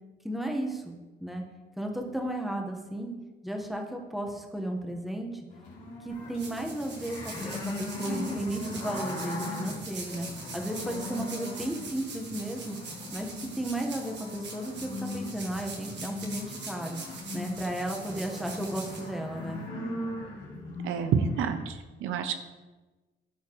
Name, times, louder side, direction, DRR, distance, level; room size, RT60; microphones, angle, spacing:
voice 1, 0.2-0.9 1.2-1.4 1.8-3.1 3.4-5.4 6.0-10.3 10.5-12.8 13.1-17.0 17.3-19.6, right 1 dB, ahead, 2 dB, 1.1 m, -34 dB
sound 1, 5.5-21.6, left 2 dB, 85° left, 2.4 m, -39 dB
sound 2, 6.1-19.7, right 3 dB, 60° right, 1.7 m, -43 dB
voice 2, 20.8-22.3, right 6 dB, 85° right, 9 dB, 0.6 m, -28 dB
12.5 x 4.3 x 3.0 m, 1.2 s
cardioid pair, 90°, 20 cm